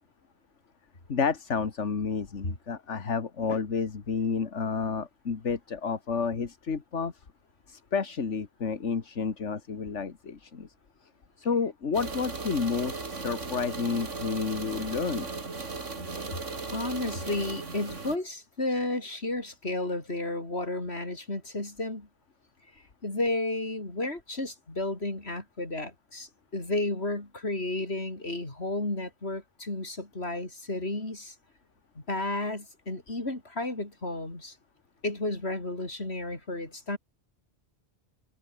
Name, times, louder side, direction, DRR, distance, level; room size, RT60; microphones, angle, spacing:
voice 1, 1.1-7.1 7.7-10.7 11.4-15.3, left 5 dB, 75° left, 2.1 m, -30 dB
sound 1, 11.9-18.2, right 3 dB, 85° right, 3.1 m, -37 dB
voice 2, 16.7-22.1 23.0-31.3 32.1-34.5 35.0-37.0, left 2 dB, 60° left, 5.3 m, -32 dB
omnidirectional pair, 1.2 m